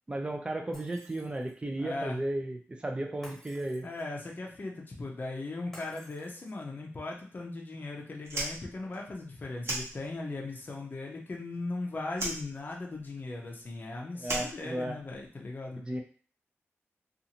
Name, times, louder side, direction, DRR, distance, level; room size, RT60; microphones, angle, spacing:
voice 1, 0.1-3.9 14.1-15.0 15.8-16.0, right 1 dB, 20° right, 3 dB, 0.5 m, -34 dB
Shatter, 0.7-1.7 3.2-4.2 5.7-6.7, equal, 5° left, 1.3 m, -54 dB
voice 2, 1.8-2.2 3.8-15.8, left 2 dB, 40° left, -1 dB, 0.6 m, -38 dB
Fire, 8.2-10.5 10.8-11.8 12.1-15.3, right 1 dB, 70° right, 1.0 m, -37 dB
2.6 x 2.4 x 2.8 m, 0.42 s
wide cardioid pair, 110°, 5 cm